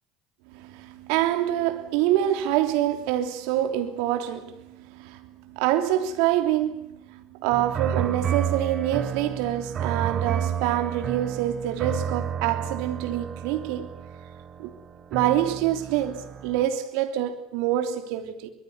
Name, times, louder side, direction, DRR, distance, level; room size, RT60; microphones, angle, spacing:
voice 1, 0.5-13.9 14.6-14.7 15.1-18.5, right 12 dB, 70° right, 3.2 m, -26 dB
sound 1, 7.5-16.7, right 8 dB, 45° right, 3.2 m, -31 dB
24.5 x 21.5 x 9.7 m
hypercardioid pair, 65°, 0 cm